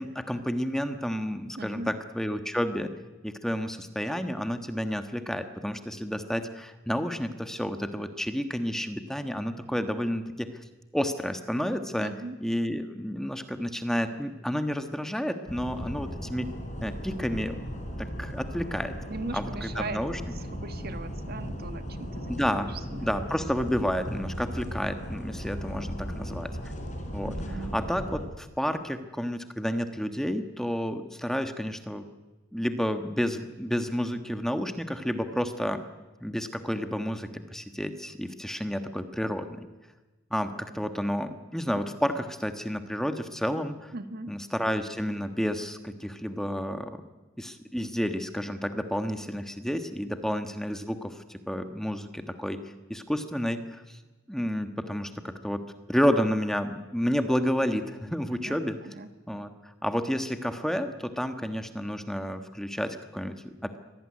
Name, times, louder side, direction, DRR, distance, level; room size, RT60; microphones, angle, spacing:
voice 1, 0.0-2.9 3.2-10.5 10.9-12.1 12.4-16.5 16.8-17.5 18.0-18.9 19.3-20.2 22.3-26.5 27.1-27.3 27.7-32.1 32.5-35.8 36.2-39.5 40.3-43.9 44.3-47.0 47.4-52.6 52.9-54.0 54.3-55.6 55.9-58.8 59.3-63.8, equal, ahead, 8 dB, 1.4 m, -30 dB
voice 2, 1.6-1.9 12.0-12.4 19.1-23.1 27.2-27.8 43.9-44.3 58.3-59.1, right 3 dB, 50° right, 9 dB, 1.6 m, -39 dB
sound 1, 15.5-28.3, equal, 35° left, 4.9 m, -37 dB
24.0 x 18.0 x 9.8 m, 1.2 s
head